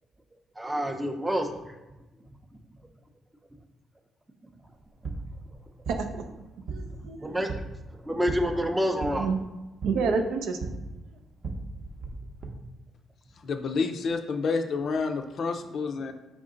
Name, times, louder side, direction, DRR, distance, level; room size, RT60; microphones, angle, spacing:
voice 1, 0.6-1.8 6.9-7.6 8.0-9.3, equal, 10° right, 5 dB, 0.5 m, -28 dB
sound 1, 4.7-12.5, right 3 dB, 50° right, 0.7 m, -38 dB
voice 2, 5.9-6.2 6.7-7.3 9.1-9.4 9.8-10.8, right 5 dB, 85° right, 6 dB, 0.4 m, -29 dB
voice 3, 13.4-16.1, left 4 dB, 60° left, 5 dB, 0.4 m, -29 dB
4.8 x 2.6 x 3.7 m, 1.1 s
cardioid pair, 90°, 0 cm